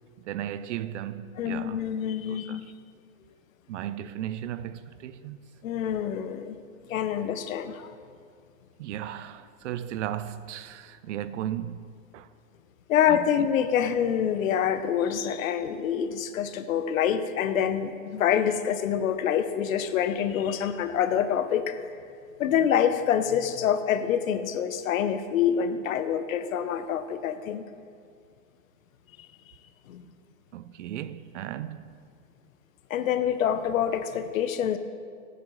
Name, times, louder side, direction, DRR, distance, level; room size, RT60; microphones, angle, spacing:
voice 1, 0.2-1.8 2.3-2.7 3.7-5.4 8.8-12.3 13.1-13.5 30.5-31.9, right 11 dB, 65° right, 0.5 m, -36 dB
voice 2, 1.4-2.6 5.6-6.5 6.9-7.9 12.9-21.8 22.4-27.6 29.9-30.0 32.9-34.8, left 9 dB, 85° left, 0.8 m, -26 dB
13.5 x 7.9 x 3.2 m
supercardioid pair, 160°, 40 cm